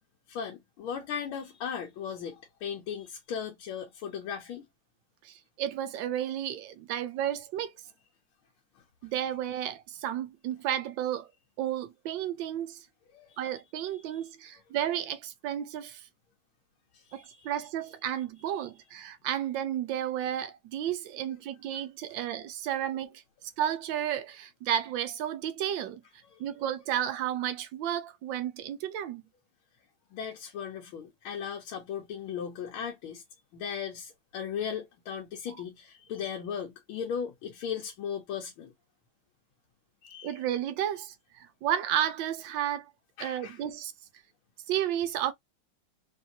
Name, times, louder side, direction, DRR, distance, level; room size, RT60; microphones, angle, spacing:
voice 1, 0.3-4.6 13.1-13.5 13.8-14.2 16.9-17.5 18.4-18.5 26.3-26.4 30.1-33.2 33.5-38.7 40.0-40.4 43.2-43.6, left 7 dB, 90° left, 1.7 m, -37 dB
voice 2, 5.2-7.7 9.0-11.3 11.6-12.9 13.4-16.1 17.1-26.0 26.4-29.2 40.2-42.9 43.2-43.9 44.7-45.3, right 11 dB, 75° right, 1.2 m, -32 dB
4.5 x 2.6 x 2.7 m
omnidirectional pair, 2.2 m